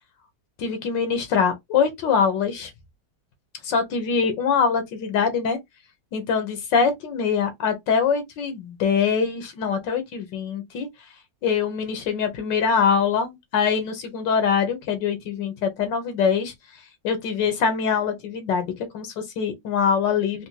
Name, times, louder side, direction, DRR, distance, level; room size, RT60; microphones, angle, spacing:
voice 1, 0.6-2.7 3.6-5.6 6.1-10.9 11.4-16.5 17.0-20.5, left 6 dB, 90° left, 1.7 m, -23 dB
4.3 x 2.2 x 2.8 m
omnidirectional pair, 1.9 m